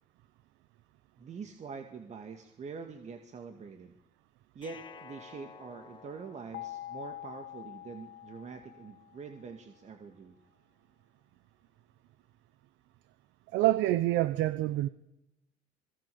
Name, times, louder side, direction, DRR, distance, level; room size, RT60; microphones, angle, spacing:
voice 1, 1.2-3.9 4.6-10.4, right 5 dB, 40° right, 2.1 m, -45 dB
sound 1, 4.6-7.7, left 5 dB, 25° left, 1.4 m, -52 dB
sound 2, 6.5-9.5, left 13 dB, 60° left, 1.7 m, -45 dB
voice 2, 13.5-14.9, right 15 dB, 75° right, 0.9 m, -26 dB
27.0 x 22.0 x 7.0 m
cardioid pair, 120°, 19 cm